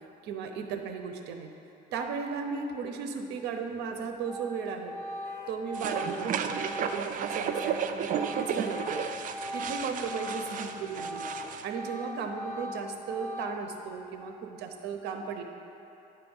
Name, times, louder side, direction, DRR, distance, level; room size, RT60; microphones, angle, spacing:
voice 1, 0.2-1.5 1.9-5.0 5.5-9.0 9.5-11.2 11.6-15.4, right 6 dB, 85° right, 5 dB, 0.7 m, -36 dB
Organ, 3.7-3.9 4.2-10.6 10.9-13.8, left 1 dB, 5° right, 1.4 m, -40 dB
sound 1, 5.2-5.6 7.0-7.3 8.4-8.9, left 5 dB, 80° left, 0.7 m, -52 dB
sound 2, 5.7-11.6, right 8 dB, 50° right, 0.4 m, -33 dB
9.3 x 4.5 x 5.4 m, 2.9 s
cardioid pair, 110°, 17 cm